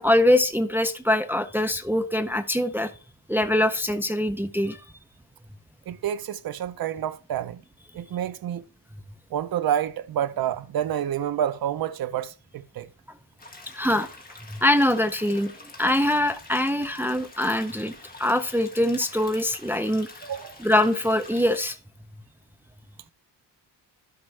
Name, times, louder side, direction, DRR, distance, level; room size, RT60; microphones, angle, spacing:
voice 1, 0.0-2.9 3.3-4.8 13.7-14.1 14.5-15.5 15.8-17.9 18.2-20.1 20.6-21.8, left 1 dB, 5° right, 0.5 m, -23 dB
voice 2, 5.9-7.6 7.9-8.7 9.3-12.9 20.2-20.6, right 10 dB, 55° right, 0.6 m, -28 dB
sound 1, 13.4-21.6, left 3 dB, 20° left, 1.7 m, -46 dB
12.5 x 5.2 x 3.2 m
wide cardioid pair, 140°, 42 cm